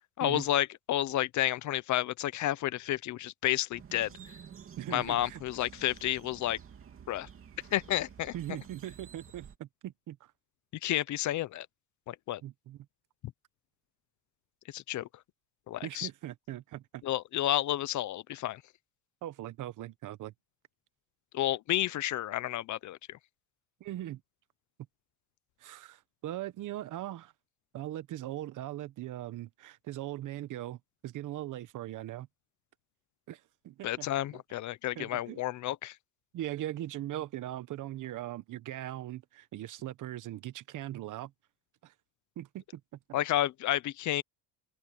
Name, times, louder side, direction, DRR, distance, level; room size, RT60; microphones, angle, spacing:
voice 1, 0.2-4.1 4.9-6.6 7.1-7.3 7.7-8.3 10.8-11.7 12.1-12.4 14.7-15.1 15.7-16.1 17.0-18.6 21.3-23.2 33.8-35.9 43.1-44.2, left 13 dB, 45° left, 0.7 m, -31 dB
sound 1, 3.7-9.6, right 7 dB, 35° right, 2.7 m, -51 dB
voice 2, 4.8-5.4 8.3-10.3 12.4-12.8 15.8-17.0 19.2-20.3 23.8-24.2 25.6-27.3 27.7-32.3 33.3-34.1 35.0-35.4 36.3-41.3 41.8-41.9 42.4-42.8, right 13 dB, 50° right, 1.1 m, -40 dB
open air
cardioid pair, 140°, 40 cm